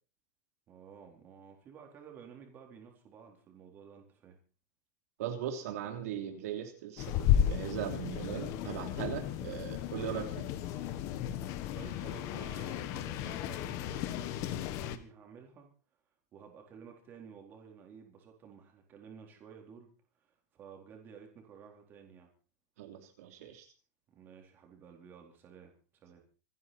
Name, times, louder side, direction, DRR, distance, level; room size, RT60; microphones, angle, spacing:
voice 1, 0.7-4.4 11.7-15.7 16.3-19.9 20.2-22.3 24.1-26.2, right 7 dB, 20° right, 2 dB, 4.1 m, -53 dB
voice 2, 5.2-10.5 22.8-23.7, right 10 dB, 60° right, 4 dB, 3.2 m, -39 dB
sound 1, 7.0-15.0, left 10 dB, 35° left, 1.5 m, -34 dB
26.5 x 10.5 x 4.4 m, 0.37 s
supercardioid pair, 175°, 9 cm